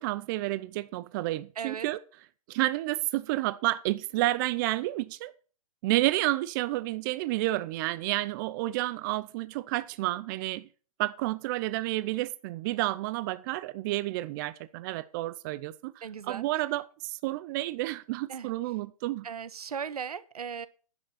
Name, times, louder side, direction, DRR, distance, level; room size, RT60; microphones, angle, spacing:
voice 1, 0.0-2.0 2.5-5.3 5.8-10.7 11.0-15.9 16.3-19.3, right 18 dB, 35° right, 0.6 m, -30 dB
voice 2, 1.5-1.9 16.0-16.5 18.3-18.5 19.2-20.7, right 7 dB, 85° right, 1.2 m, -37 dB
10.5 x 7.7 x 5.8 m
hypercardioid pair, 140°, 19 cm